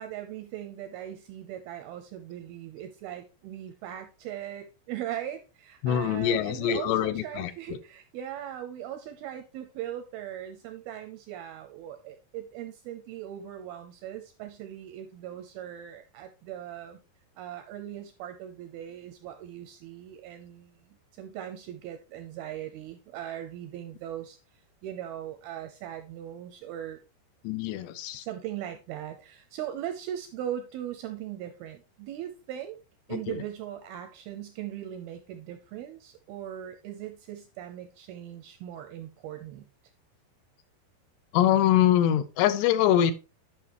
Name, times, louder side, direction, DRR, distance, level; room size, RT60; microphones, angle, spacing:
voice 1, 0.0-17.0 17.4-27.0 28.2-32.8 33.1-39.7, right 11 dB, 80° right, 7 dB, 2.2 m, -39 dB
voice 2, 5.8-7.8 27.4-28.3 33.1-33.4 41.3-43.1, left 11 dB, 80° left, 13 dB, 2.8 m, -24 dB
11.0 x 5.7 x 2.9 m, 0.29 s
omnidirectional pair, 5.0 m